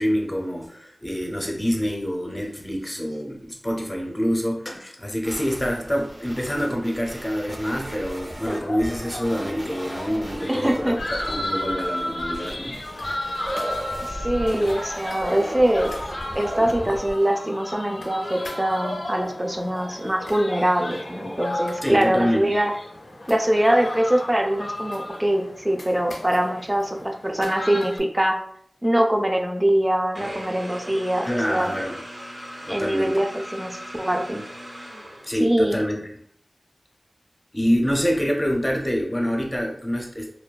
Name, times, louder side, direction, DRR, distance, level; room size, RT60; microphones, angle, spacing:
voice 1, 0.0-12.8 21.8-22.5 31.2-32.0 32.7-33.2 35.2-36.1 37.5-40.3, equal, 25° left, 1 dB, 0.6 m, -26 dB
sound 1, 5.2-17.1, equal, 60° right, 0.6 m, -36 dB
sound 2, 8.5-28.0, left 1 dB, 85° left, 0.4 m, -34 dB
voice 2, 10.5-11.0 14.1-15.9 16.4-22.7 23.3-28.4 28.8-31.8 32.7-34.4 35.4-35.8, right 1 dB, 20° right, 3 dB, 0.4 m, -23 dB
sound 3, 30.1-35.7, equal, 80° right, 1.2 m, -39 dB
2.6 x 2.2 x 2.2 m, 0.64 s
wide cardioid pair, 40°, 0 cm